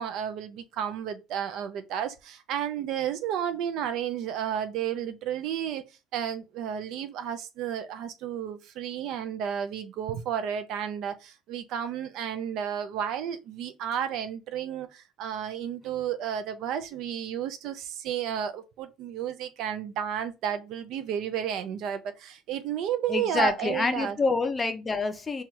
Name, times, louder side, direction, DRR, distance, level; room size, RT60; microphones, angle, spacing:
voice 1, 0.0-5.8 6.1-24.2, right 9 dB, 60° right, 0.5 m, -32 dB
voice 2, 23.1-25.4, left 4 dB, 20° left, 0.6 m, -27 dB
4.3 x 2.4 x 3.0 m
cardioid pair, 125°, 0 cm